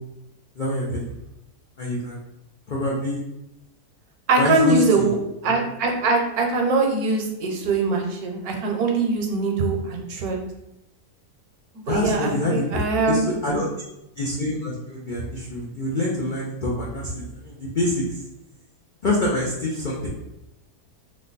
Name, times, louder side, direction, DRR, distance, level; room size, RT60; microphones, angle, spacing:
voice 1, 0.6-1.1 1.8-2.2 2.7-3.2 4.4-5.1 11.9-12.8 13.1-13.7 14.2-18.2 19.0-20.1, left 2 dB, 80° left, -4 dB, 0.4 m, -25 dB
voice 2, 4.3-5.1 5.4-10.4 11.9-13.2, right 3 dB, 75° right, 2 dB, 1.1 m, -22 dB
3.2 x 2.2 x 3.9 m, 0.87 s
omnidirectional pair, 1.7 m